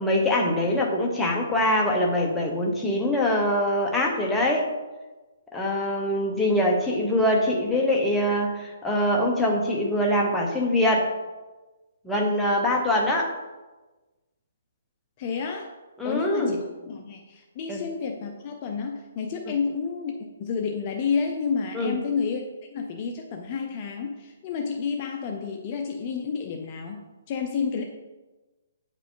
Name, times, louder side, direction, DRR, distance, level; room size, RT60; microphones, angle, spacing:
voice 1, 0.0-4.7 5.5-11.1 12.0-13.4 16.0-16.6 17.7-17.8 21.7-22.0, left 1 dB, 5° left, -2 dB, 0.9 m, -23 dB
voice 2, 15.2-15.7 16.0-20.1 20.4-22.4 22.7-27.8, left 5 dB, 30° left, 2 dB, 0.6 m, -30 dB
9.0 x 4.9 x 3.8 m, 1.2 s
hypercardioid pair, 165°, 0 cm